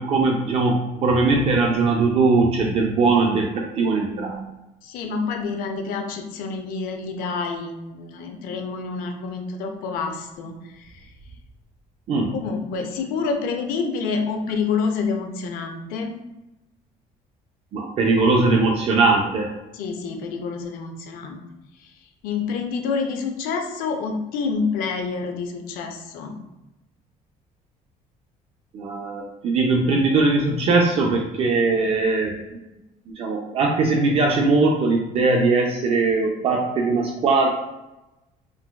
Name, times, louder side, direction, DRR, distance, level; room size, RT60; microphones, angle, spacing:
voice 1, 0.0-4.4 12.1-12.3 17.7-19.5 28.7-32.6 33.1-37.5, right 3 dB, 40° right, 1 dB, 0.4 m, -20 dB
voice 2, 4.8-10.5 10.8-10.9 12.3-16.2 19.7-21.4 22.2-26.4, left 5 dB, 80° left, 4 dB, 0.5 m, -28 dB
3.8 x 2.2 x 2.2 m, 0.98 s
cardioid pair, 150°, 15 cm